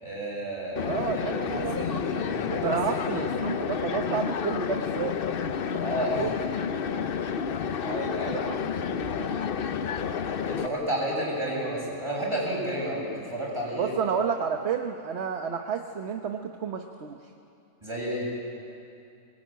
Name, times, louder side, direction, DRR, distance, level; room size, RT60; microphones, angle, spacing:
voice 1, 0.0-1.4 1.7-3.3 5.8-6.3 7.8-8.4 10.5-13.9 17.8-18.3, equal, 20° right, -5 dB, 7.8 m, -31 dB
sound 1, 0.8-10.7, left 7 dB, 50° left, 0.8 m, -30 dB
voice 2, 0.8-2.0 2.5-5.2 5.7-6.4 8.3-9.5 13.8-17.3, right 6 dB, 55° right, 5 dB, 1.2 m, -31 dB
23.5 x 21.0 x 9.2 m, 2.6 s
omnidirectional pair, 1.4 m